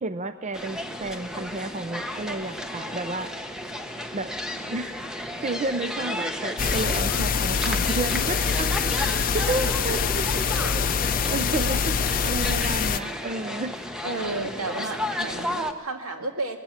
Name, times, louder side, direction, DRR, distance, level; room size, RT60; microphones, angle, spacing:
voice 1, 0.0-3.3 4.1-4.3 4.7-5.0 5.4-8.7 9.0-10.0 10.9-13.7, right 2 dB, 35° right, 11 dB, 0.5 m, -31 dB
sound 1, 0.5-15.7, left 1 dB, 5° right, 0.9 m, -33 dB
sound 2, 6.6-13.0, left 6 dB, 40° left, 0.6 m, -25 dB
voice 2, 14.0-16.6, right 2 dB, 75° right, 5 dB, 2.1 m, -32 dB
19.5 x 15.5 x 8.6 m, 1.4 s
head